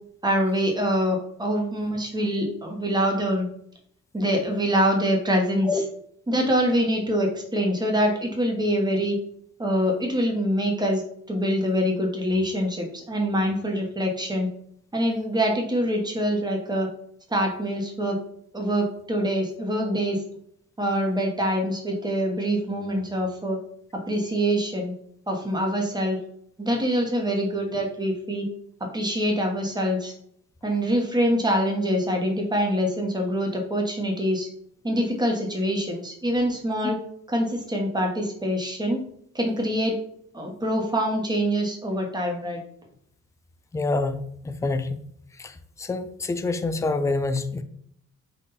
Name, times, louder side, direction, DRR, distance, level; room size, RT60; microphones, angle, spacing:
voice 1, 0.2-3.5 4.1-5.8 6.3-9.2 9.6-11.0 11.3-14.5 14.9-16.9 17.3-18.2 18.5-20.2 20.8-23.6 23.9-24.9 25.3-26.2 26.6-28.5 28.8-30.1 30.6-34.5 34.8-37.0 37.3-39.0 39.3-40.0 40.3-42.6, equal, 15° right, 1 dB, 1.1 m, -25 dB
voice 2, 43.7-45.0 45.4-45.5 45.8-47.6, left 3 dB, 10° left, 10 dB, 0.3 m, -26 dB
3.9 x 2.6 x 4.1 m, 0.68 s
cardioid pair, 90°, 30 cm